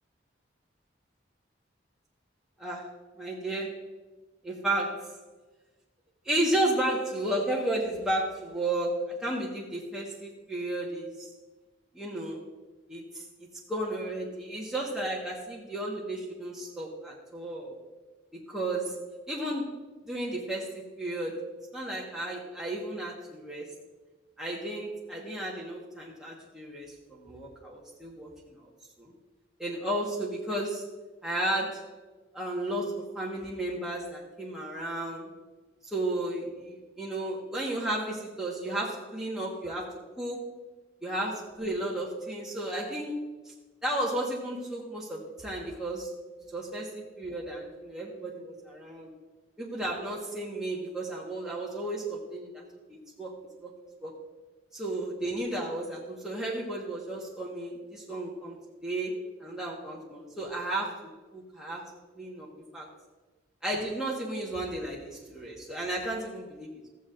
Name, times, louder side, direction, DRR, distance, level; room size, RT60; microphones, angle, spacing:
voice 1, 2.6-2.9 3.2-3.8 4.4-5.2 6.2-11.3 11.9-12.4 12.9-13.2 13.7-17.8 18.3-18.9 19.3-19.7 20.1-21.4 21.7-23.7 24.4-28.5 29.0-29.1 29.6-30.8 31.2-31.9 32.3-35.3 35.8-40.5 41.0-43.5 43.8-46.1 46.5-49.1 49.6-52.6 52.9-53.4 53.6-53.7 54.0-54.1 54.7-62.5 62.7-62.9 63.6-66.8, right 1 dB, 5° right, -5 dB, 1.4 m, -33 dB
14.0 x 9.2 x 2.6 m, 1.3 s
head